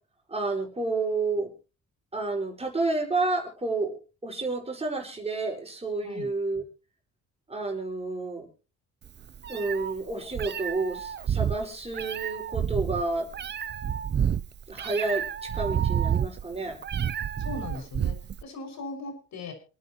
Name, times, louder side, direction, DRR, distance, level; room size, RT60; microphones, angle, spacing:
voice 1, 0.3-1.5 2.1-6.6 7.5-8.5 9.5-13.3 14.7-16.8, right 3 dB, 20° right, 1 dB, 5.2 m, -30 dB
Meow, 9.0-18.4, right 8 dB, 35° right, 0.6 m, -30 dB
voice 2, 17.4-18.1 18.4-19.5, left 3 dB, 65° left, 5 dB, 6.0 m, -38 dB
28.0 x 9.5 x 3.0 m, 0.33 s
cardioid pair, 90°, 30 cm